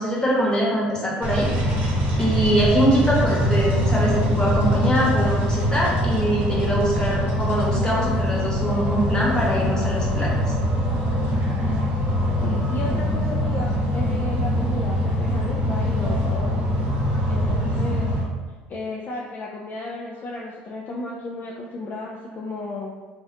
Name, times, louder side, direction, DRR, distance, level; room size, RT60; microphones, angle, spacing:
voice 1, 0.0-1.5 2.2-10.3, right 1 dB, 15° left, -5 dB, 1.0 m, -23 dB
sound 1, 1.2-18.2, equal, 45° right, 0.8 m, -23 dB
voice 2, 12.4-16.6 17.3-18.1 18.7-22.9, left 2 dB, 40° left, -2 dB, 0.3 m, -33 dB
2.4 x 2.2 x 2.5 m, 1.3 s
hypercardioid pair, 75°, 5 cm